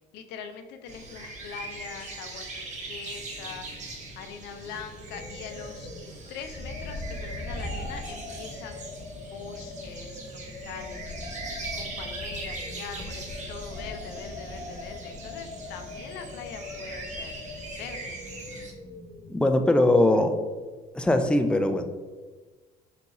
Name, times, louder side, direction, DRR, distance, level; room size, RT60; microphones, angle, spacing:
voice 1, 0.1-3.9 4.2-5.9 6.3-8.8 9.3-10.2 10.5-11.2 11.8-17.5 17.8-18.2, left 7 dB, 85° left, 6 dB, 0.5 m, -42 dB
sound 1, 0.9-18.7, right 3 dB, 45° right, 0.7 m, -41 dB
sound 2, 4.5-19.8, left 2 dB, 35° left, 0.8 m, -40 dB
voice 2, 19.3-20.3 20.9-21.8, left 1 dB, 5° left, 6 dB, 0.3 m, -21 dB
4.1 x 2.3 x 4.0 m, 1.3 s
cardioid pair, 110°, 17 cm